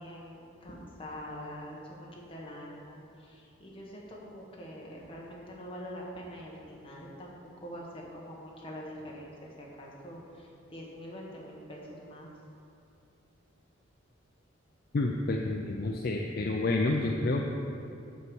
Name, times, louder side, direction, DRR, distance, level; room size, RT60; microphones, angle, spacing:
voice 1, 0.0-7.3 7.6-12.3, equal, 25° left, -3 dB, 1.2 m, -44 dB
voice 2, 14.9-17.5, left 2 dB, 45° left, 1 dB, 0.4 m, -29 dB
7.0 x 4.7 x 6.9 m, 2.6 s
head